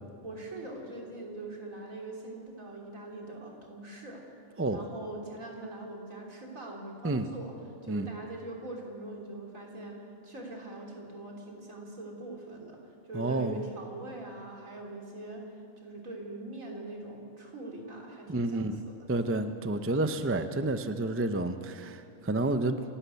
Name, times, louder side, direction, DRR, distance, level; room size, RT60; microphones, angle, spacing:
voice 1, 0.2-4.2 4.7-7.5 7.8-19.0, right 2 dB, 75° right, -1 dB, 3.7 m, -42 dB
voice 2, 13.1-13.6 18.3-18.8 19.1-22.8, right 2 dB, 15° right, 9 dB, 0.5 m, -30 dB
27.5 x 11.5 x 8.3 m, 2.6 s
omnidirectional pair, 1.4 m